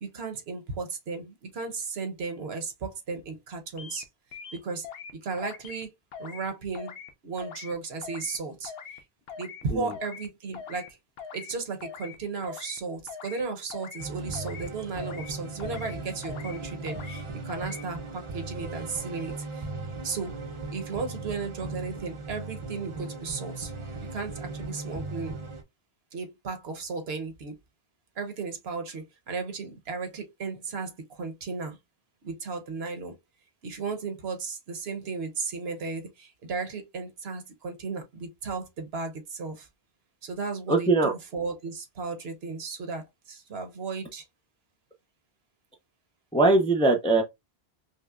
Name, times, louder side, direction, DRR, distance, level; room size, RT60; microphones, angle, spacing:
voice 1, 0.0-4.0 4.5-4.9 5.2-5.9 6.2-6.9 7.2-8.7 9.4-11.0 11.3-19.7 20.0-20.3 20.7-23.7 24.0-25.4 26.1-27.5 28.2-31.8 32.2-33.2 33.6-39.7 40.2-44.3, right 4 dB, 75° right, 1.1 m, -35 dB
sound 1, 3.8-4.0 4.3-5.1 5.4-5.8 6.1-6.5 6.7-7.1 7.4-7.7 8.0-8.4 8.6-9.0 9.3-9.6 9.9-10.3 10.5-10.9 11.2-11.5 11.8-12.2 12.4-12.8 13.1-13.4 13.7-14.1 14.3-14.7 15.0-15.3 15.6-16.0 16.2-16.6 16.9-17.2 17.5-17.8, left 7 dB, 70° left, 0.8 m, -42 dB
sound 2, 14.0-25.6, right 3 dB, 35° right, 0.6 m, -38 dB
voice 2, 40.7-41.1 46.3-47.2, right 3 dB, 10° left, 0.3 m, -21 dB
5.5 x 2.1 x 2.3 m
omnidirectional pair, 1.1 m